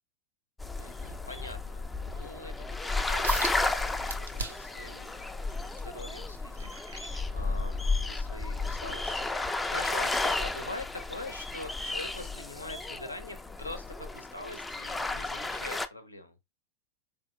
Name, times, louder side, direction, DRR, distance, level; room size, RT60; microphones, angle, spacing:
sound 1, 0.6-15.9, left 3 dB, 10° left, 0.3 m, -33 dB
voice 1, 0.8-5.2 5.5-16.4, left 2 dB, 85° left, 0.6 m, -44 dB
sound 2, 3.2-3.6 4.1-4.8 5.3-7.8 8.3-8.6 9.1-9.2, right 4 dB, 75° right, 0.6 m, -39 dB
3.8 x 3.3 x 2.4 m
figure-of-eight pair, 90°, 0 cm